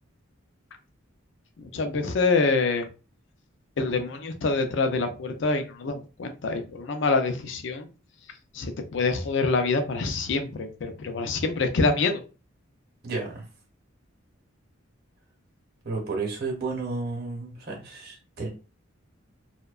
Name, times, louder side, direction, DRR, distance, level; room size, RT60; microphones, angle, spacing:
voice 1, 1.6-2.9 3.8-7.9 8.5-12.2, left 3 dB, 55° left, 7 dB, 0.4 m, -26 dB
voice 2, 13.0-13.5 15.8-18.5, right 3 dB, 45° right, -1 dB, 0.8 m, -32 dB
2.6 x 2.1 x 2.3 m, 0.33 s
head